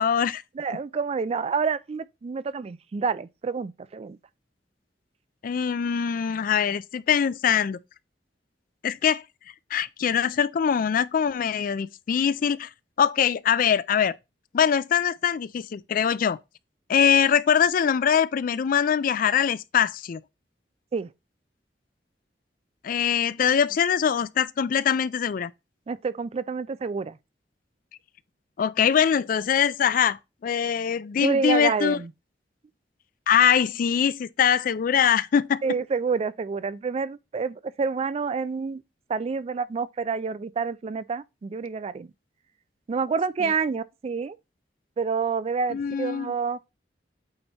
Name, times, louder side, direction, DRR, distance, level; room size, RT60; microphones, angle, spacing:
voice 1, 0.0-0.4 5.4-7.8 8.8-9.2 9.7-12.7 13.0-14.1 14.5-16.4 16.9-20.2 22.8-25.5 28.6-32.0 33.3-35.6 43.4-43.5 45.7-46.3, left 8 dB, 50° left, 0.3 m, -23 dB
voice 2, 0.6-4.2 20.9-21.1 25.9-27.2 31.2-32.1 35.6-38.8 39.1-42.1 42.9-44.4 45.0-46.6, right 5 dB, 35° right, 0.3 m, -28 dB
8.7 x 2.9 x 4.2 m
head